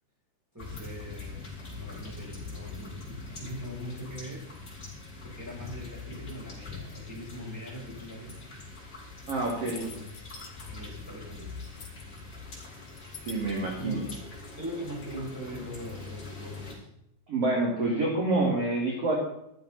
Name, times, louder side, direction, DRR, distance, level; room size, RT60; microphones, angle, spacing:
voice 1, 0.5-1.5 1.7-4.5 5.2-8.4 9.5-10.1 10.7-11.6 13.6-14.0 14.6-16.9, equal, 5° right, -4 dB, 7.0 m, -41 dB
sound 1, 0.6-16.8, left 3 dB, 20° left, 5.6 m, -43 dB
sound 2, 9.2-11.0 11.3-12.2 12.6-14.2, left 5 dB, 35° left, 2.4 m, -47 dB
voice 2, 9.3-9.8 13.3-14.0 17.3-19.2, right 2 dB, 40° right, -1 dB, 3.0 m, -27 dB
14.5 x 14.5 x 4.2 m, 0.78 s
omnidirectional pair, 5.0 m